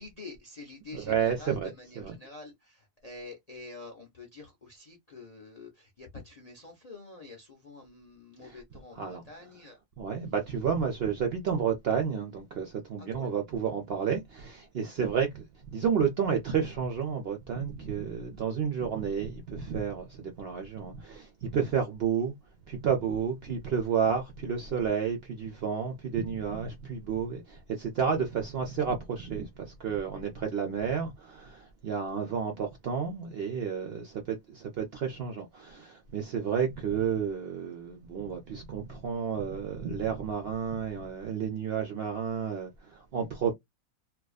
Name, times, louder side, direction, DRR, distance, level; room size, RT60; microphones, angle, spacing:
voice 1, 0.0-9.8 13.1-13.3, left 3 dB, 50° left, 0.5 m, -47 dB
voice 2, 0.9-1.7 2.0-2.1 8.4-8.6 8.9-9.2 10.0-22.3 22.7-43.5, right 7 dB, 65° right, 0.6 m, -31 dB
2.5 x 2.2 x 2.3 m
omnidirectional pair, 1.5 m